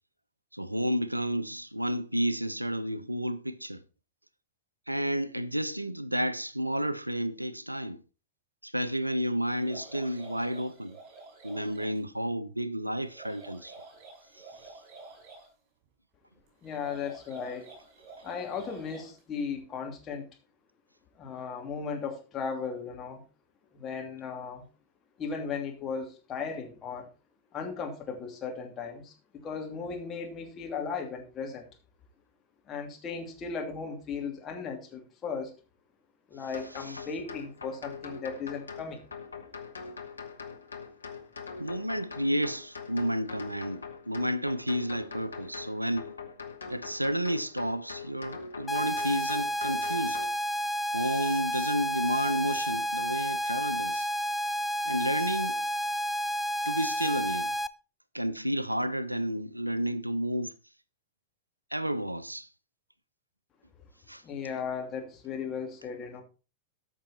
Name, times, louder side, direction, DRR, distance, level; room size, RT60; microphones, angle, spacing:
voice 1, 0.5-3.8 4.9-8.0 8.6-11.0 11.4-13.7 41.6-46.1 46.7-50.2 50.9-54.1 54.9-55.6 56.7-57.5 58.1-60.5 61.7-62.5 64.1-64.2, equal, 85° right, 0.5 m, -31 dB
sound 1, 9.5-12.0 13.0-15.5 16.6-19.2, right 3 dB, 45° right, 6.6 m, -49 dB
voice 2, 16.6-17.7 18.2-20.3 21.2-23.2 23.7-24.6 25.2-27.1 27.5-31.7 32.7-35.5 36.3-39.0 64.2-66.2, left 5 dB, 25° left, 2.8 m, -36 dB
sound 2, 36.5-50.3, left 5 dB, 75° left, 1.4 m, -43 dB
sound 3, 48.7-57.7, equal, 10° left, 0.4 m, -31 dB
14.0 x 6.2 x 4.2 m
figure-of-eight pair, 90°, 0 cm